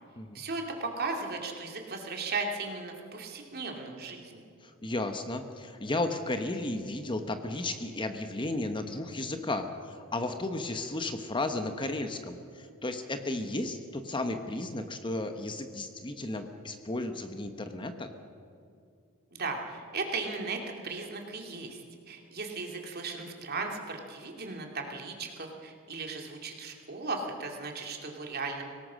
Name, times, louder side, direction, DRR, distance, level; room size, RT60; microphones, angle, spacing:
voice 1, 0.3-4.4 19.3-28.6, right 3 dB, 45° right, 2 dB, 2.8 m, -36 dB
voice 2, 4.6-18.1, left 2 dB, 20° left, 7 dB, 1.0 m, -34 dB
24.5 x 18.0 x 6.3 m, 2.4 s
head